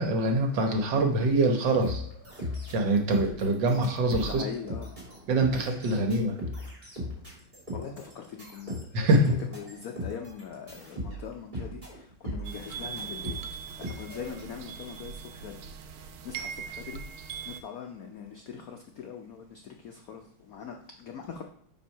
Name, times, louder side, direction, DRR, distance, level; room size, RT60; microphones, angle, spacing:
voice 1, 0.0-2.0 2.7-4.5 5.3-6.4 8.9-9.3, right 2 dB, 65° right, 3 dB, 1.6 m, -24 dB
sound 1, 1.7-14.4, left 1 dB, 20° right, 2.4 m, -38 dB
voice 2, 4.2-4.9 7.7-9.2 9.5-13.5 13.8-17.0 17.5-21.4, left 7 dB, 80° left, 3 dB, 0.7 m, -42 dB
sound 2, 12.4-17.6, right 7 dB, 90° right, 1.5 m, -40 dB
7.4 x 3.6 x 5.5 m, 0.64 s
omnidirectional pair, 2.3 m